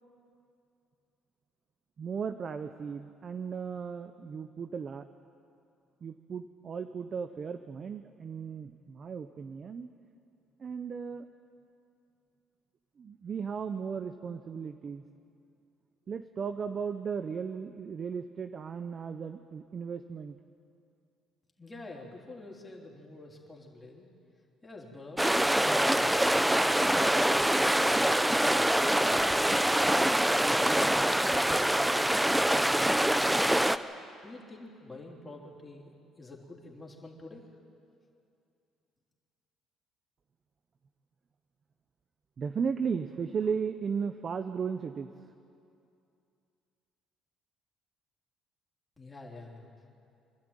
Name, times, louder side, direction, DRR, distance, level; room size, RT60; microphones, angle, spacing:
voice 1, 2.0-5.1 6.0-9.9 10.6-11.3 13.0-15.0 16.1-20.4 42.4-45.1, right 6 dB, 40° right, 9 dB, 0.8 m, -36 dB
voice 2, 21.6-24.1 24.6-26.4 27.0-28.2 29.2-33.0 34.2-37.5 49.0-49.7, left 2 dB, 15° left, -1 dB, 3.6 m, -47 dB
sound 1, 25.2-33.8, right 1 dB, 5° right, 0.6 m, -25 dB
26.0 x 12.5 x 9.1 m, 2.5 s
cardioid pair, 115°, 0 cm